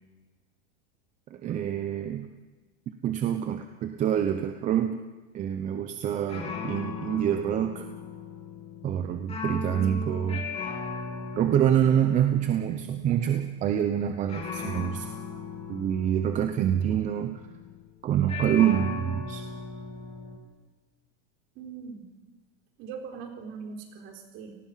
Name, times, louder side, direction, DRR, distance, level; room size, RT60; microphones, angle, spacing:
voice 1, 1.3-2.3 3.0-5.0 5.3-7.9 8.8-10.4 11.4-15.1 15.7-17.4 18.0-19.4, right 10 dB, 20° right, 7 dB, 0.9 m, -26 dB
sound 1, 5.6-6.0 6.3-17.9 18.3-20.4, left 5 dB, 15° left, 3.3 m, -38 dB
voice 2, 21.6-22.1 22.8-24.6, right 5 dB, 35° right, 3 dB, 3.9 m, -41 dB
30.0 x 19.0 x 5.9 m, 1.3 s
supercardioid pair, 160°, 35 cm